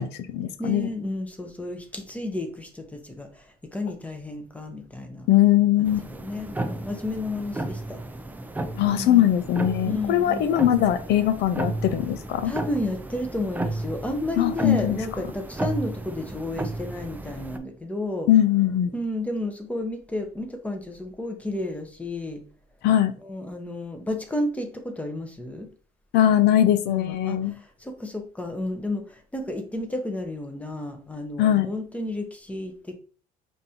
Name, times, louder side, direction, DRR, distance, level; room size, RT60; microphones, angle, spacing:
voice 1, 0.0-0.9 5.3-6.0 8.7-12.5 14.4-15.0 18.3-18.9 22.8-23.1 26.1-27.5 31.4-31.7, left 12 dB, 75° left, 12 dB, 0.5 m, -21 dB
voice 2, 0.6-5.3 6.1-8.0 8.9-9.3 9.8-10.5 12.4-18.3 18.9-22.4 23.2-25.7 26.9-32.9, left 1 dB, 10° left, 5 dB, 0.8 m, -32 dB
sound 1, 5.8-17.6, right 2 dB, 10° right, 0.4 m, -34 dB
5.2 x 2.6 x 2.8 m, 0.40 s
cardioid pair, 110°, 17 cm